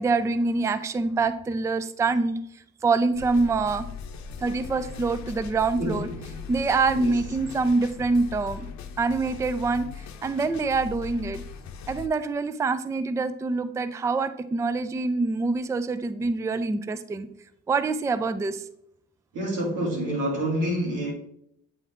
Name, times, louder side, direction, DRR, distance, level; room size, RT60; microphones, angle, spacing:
voice 1, 0.0-2.4 2.8-3.9 4.4-6.1 6.5-8.7 9.0-9.9 10.2-11.4 11.9-17.3 17.7-18.6, right 3 dB, 10° right, 12 dB, 0.3 m, -25 dB
sound 1, 3.1-12.1, left 6 dB, 65° left, 0.7 m, -40 dB
voice 2, 5.8-6.5 6.9-7.1 19.3-21.1, right 1 dB, 90° right, -1 dB, 2.3 m, -28 dB
8.3 x 3.5 x 3.5 m, 0.71 s
cardioid pair, 90°, 30 cm